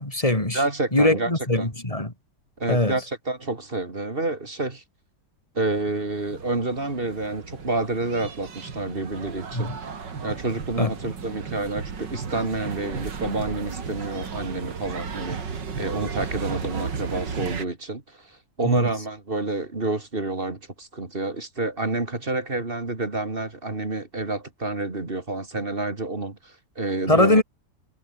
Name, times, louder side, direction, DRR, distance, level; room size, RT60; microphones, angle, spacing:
voice 1, 0.0-0.6 0.9-2.1 2.7-2.9 9.5-9.8 10.8-10.9 18.6-18.9 27.1-27.4, left 1 dB, 20° left, 3.9 m, -21 dB
voice 2, 0.5-1.7 2.6-4.8 5.5-9.7 10.2-27.4, right 2 dB, 30° right, 2.8 m, -29 dB
sound 1, 5.7-17.7, right 5 dB, 80° right, 3.1 m, -35 dB
omnidirectional pair, 1.9 m